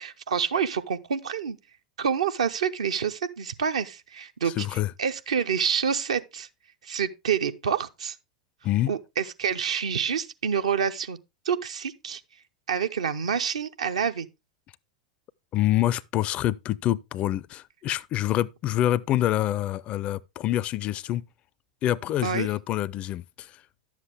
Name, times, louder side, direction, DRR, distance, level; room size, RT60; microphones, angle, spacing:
voice 1, 0.0-1.6 2.0-6.5 6.8-8.2 8.9-11.2 11.4-12.2 12.7-14.3 22.2-22.5, right 7 dB, 70° right, 0.7 m, -27 dB
voice 2, 4.6-4.9 8.6-8.9 15.5-21.2 21.8-23.5, left 13 dB, 35° left, 0.4 m, -26 dB
11.0 x 7.4 x 3.4 m
figure-of-eight pair, 85°, 4 cm